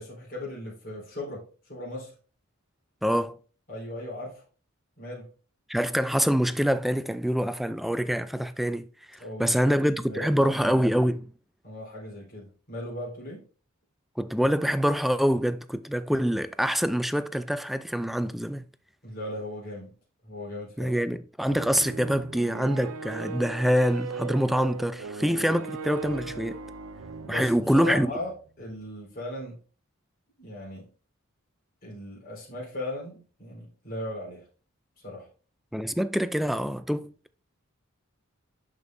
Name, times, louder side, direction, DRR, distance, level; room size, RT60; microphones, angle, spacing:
voice 1, 0.0-2.1 3.7-4.4 5.0-5.2 9.2-9.8 10.0-11.2 11.6-13.4 19.0-19.9 20.2-21.0 27.2-29.6 30.4-30.9 31.8-34.4 35.0-35.3, left 1 dB, 45° left, 3.9 m, -37 dB
voice 2, 3.0-3.4 5.7-8.9 9.4-11.3 14.2-18.6 20.8-26.6 27.3-28.1 35.7-37.1, equal, ahead, 0.3 m, -25 dB
sound 1, 21.5-28.4, right 4 dB, 75° right, 0.5 m, -38 dB
10.5 x 5.3 x 2.6 m
head